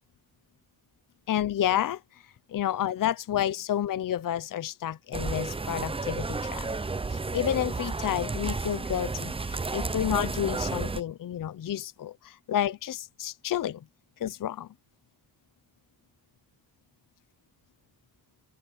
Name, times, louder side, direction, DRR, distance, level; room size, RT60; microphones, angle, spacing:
voice 1, 1.3-2.0 2.5-6.7 7.1-13.8 14.2-14.7, left 11 dB, 55° left, 0.7 m, -30 dB
sound 1, 5.1-11.0, right 3 dB, 15° right, 0.5 m, -32 dB
open air
wide cardioid pair, 135°, 40 cm